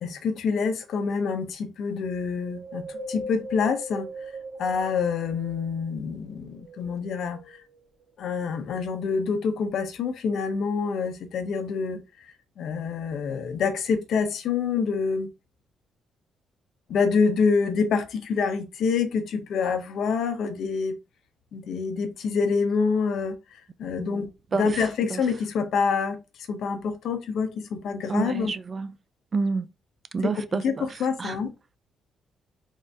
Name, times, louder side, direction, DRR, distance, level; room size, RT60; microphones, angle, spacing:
voice 1, 0.0-4.1 4.6-7.4 8.2-12.0 12.6-15.3 16.9-20.9 21.5-23.4 23.8-24.3 24.5-26.2 26.5-28.5 30.2-31.5, left 5 dB, 70° left, 0.7 m, -26 dB
Wind, 2.4-6.0 6.5-7.8 8.3-8.4, equal, 85° right, 1.3 m, -39 dB
voice 2, 28.1-28.9 29.3-29.7 30.1-30.9 31.2-31.4, right 4 dB, 40° right, 0.4 m, -28 dB
3.6 x 2.6 x 3.3 m
cardioid pair, 90°, 0 cm